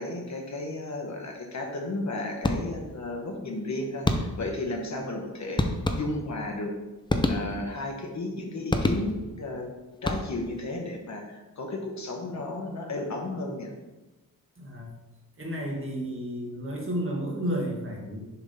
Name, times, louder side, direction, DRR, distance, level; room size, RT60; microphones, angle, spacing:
voice 1, 0.0-5.7 5.9-6.7 7.3-9.7 10.0-13.7, left 2 dB, 50° left, 1 dB, 1.1 m, -33 dB
sound 1, 2.4-3.0 4.0-4.6 5.6-6.4 7.1-7.9 8.7-9.4 9.9-10.6, left 1 dB, 15° left, 0.5 m, -28 dB
voice 2, 14.6-14.9 15.4-18.3, equal, 35° right, -1 dB, 1.6 m, -32 dB
7.0 x 3.6 x 5.5 m, 1.1 s
wide cardioid pair, 135°, 36 cm